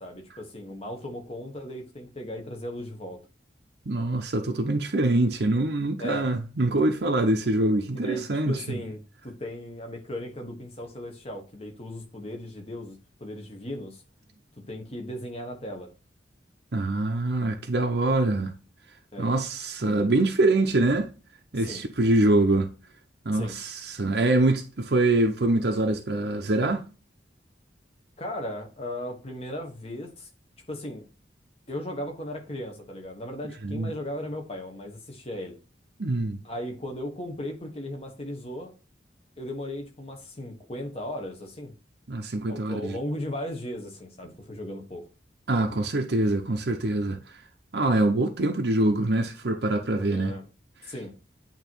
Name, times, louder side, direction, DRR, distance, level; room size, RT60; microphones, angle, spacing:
voice 1, 0.0-3.2 6.0-6.3 7.9-14.0 14.7-15.9 19.1-19.3 21.5-21.8 23.3-23.5 28.2-30.3 30.7-31.0 31.7-35.6 36.4-38.7 39.4-41.7 42.5-45.1 50.0-50.4 50.9-51.1, left 1 dB, 30° left, 1.3 m, -36 dB
voice 2, 3.9-8.8 16.7-18.5 19.2-21.1 21.5-22.7 23.3-26.8 33.6-33.9 36.0-36.4 42.1-43.0 45.5-47.2 47.7-50.4, right 2 dB, 60° right, 0.7 m, -24 dB
8.9 x 3.0 x 4.5 m
head